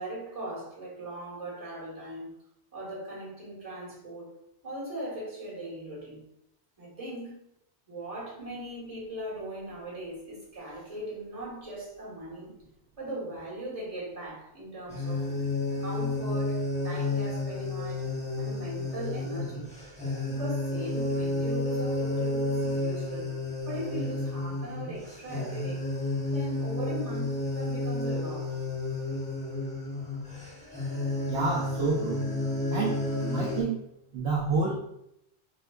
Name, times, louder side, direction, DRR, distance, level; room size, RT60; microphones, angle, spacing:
voice 1, 0.0-2.3 2.7-4.3 4.6-6.3 6.8-7.3 7.9-12.6 13.0-15.3 15.7-18.1 18.4-19.7 20.2-25.9 26.3-28.6, right 1 dB, 35° right, 1.3 m, -39 dB
sound 1, 14.9-33.6, left 2 dB, 5° left, 0.8 m, -31 dB
voice 2, 31.3-32.3 32.7-33.1 33.3-33.8 34.1-34.8, right 4 dB, 70° right, 0.8 m, -28 dB
4.2 x 2.2 x 2.3 m
omnidirectional pair, 1.1 m